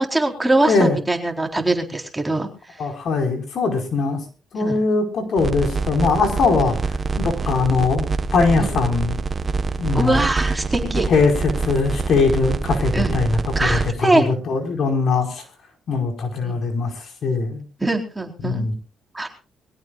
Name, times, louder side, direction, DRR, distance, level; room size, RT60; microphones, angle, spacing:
voice 1, 0.0-2.5 4.6-4.8 7.4-7.5 8.6-8.7 9.9-11.1 12.9-13.2 13.6-14.3 16.4-16.6 17.8-18.7 19.1-19.3, right 2 dB, 10° right, 3 dB, 4.1 m, -22 dB
voice 2, 0.6-1.0 2.8-4.2 4.5-9.2 9.8-10.2 10.8-15.4 15.9-16.9 17.2-17.6 18.4-18.7, left 4 dB, 60° left, 4 dB, 4.9 m, -21 dB
sound 1, 5.4-13.9, right 4 dB, 35° right, 1.3 m, -25 dB
23.5 x 16.5 x 2.5 m, 0.35 s
cardioid pair, 90°, 0 cm